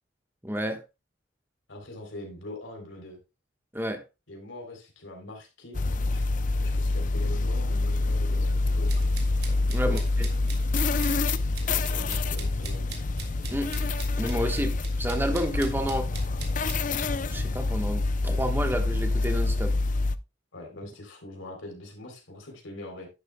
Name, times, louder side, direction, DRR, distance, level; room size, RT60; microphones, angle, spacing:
voice 1, 0.4-0.8 3.7-4.0 9.7-10.3 13.5-13.7 14.2-16.1 17.3-19.8, equal, 10° right, 1.2 m, -30 dB
voice 2, 1.7-3.2 4.3-9.1 9.7-10.1 11.6-12.9 20.5-23.1, left 1 dB, 85° left, 3.5 m, -42 dB
sound 1, 5.7-20.2, left 2 dB, 40° left, 0.5 m, -26 dB
sound 2, 8.9-16.8, right 7 dB, 55° right, 2.9 m, -43 dB
11.5 x 10.5 x 2.2 m
head